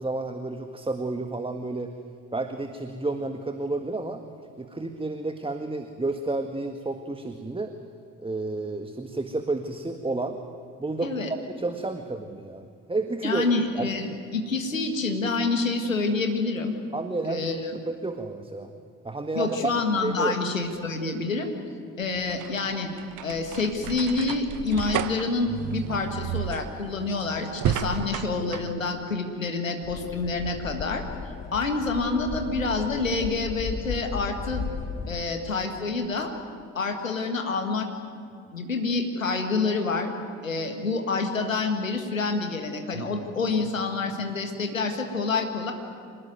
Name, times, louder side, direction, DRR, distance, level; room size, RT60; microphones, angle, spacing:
voice 1, 0.0-1.9 2.3-4.2 4.6-7.8 8.2-10.4 10.8-11.2 11.6-13.5 13.7-14.2 16.9-17.5 17.7-18.7 19.0-19.7 20.0-20.4 35.0-35.2 42.9-43.1, right 2 dB, 15° right, 6 dB, 1.7 m, -31 dB
voice 2, 13.2-16.7 17.2-17.7 19.3-21.5 22.0-22.9 23.2-31.0 31.5-34.6 35.1-36.3 36.8-37.9 38.5-40.1 40.4-45.7, left 3 dB, 90° left, 5 dB, 1.9 m, -27 dB
sound 1, 22.0-28.7, right 10 dB, 50° right, 1.2 m, -32 dB
sound 2, 29.8-35.2, left 6 dB, 45° left, 2.6 m, -35 dB
26.5 x 20.0 x 9.4 m, 2.4 s
figure-of-eight pair, 45°, 38 cm